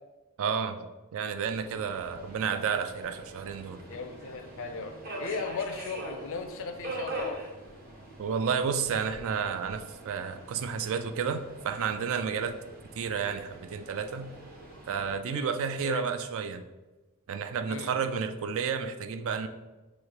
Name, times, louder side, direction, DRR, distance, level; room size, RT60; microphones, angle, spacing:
voice 1, 0.4-0.8 1.1-3.8 8.2-12.6 12.9-14.3 14.9-16.6 17.3-19.5, right 6 dB, 65° right, 9 dB, 0.4 m, -31 dB
Subway metro underground, 1.4-15.2, right 2 dB, 45° right, 0.8 m, -44 dB
voice 2, 3.9-7.4 15.3-15.5 15.8-16.0 17.7-17.9, left 4 dB, 60° left, 7 dB, 0.5 m, -37 dB
6.2 x 2.8 x 2.9 m, 1.1 s
head